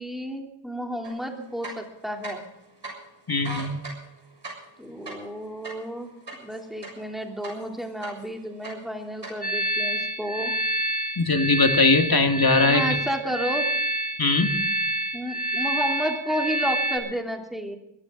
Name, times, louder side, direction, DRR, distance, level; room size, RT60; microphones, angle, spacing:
voice 1, 0.0-2.4 4.8-6.1 6.4-10.5 12.6-13.7 15.1-17.8, equal, ahead, 2 dB, 3.3 m, -31 dB
sound 1, 1.0-1.1 1.5-2.6 2.8-2.9 3.3-7.1 7.4-8.3 8.6-9.3, right 2 dB, 65° right, 7.1 m, -38 dB
voice 2, 3.3-3.8 11.2-12.8 14.2-14.5, left 3 dB, 50° left, 5 dB, 2.0 m, -20 dB
sound 2, 9.4-17.0, right 1 dB, 20° left, 5.0 m, -27 dB
22.0 x 15.0 x 3.9 m, 0.82 s
wide cardioid pair, 50°, 45 cm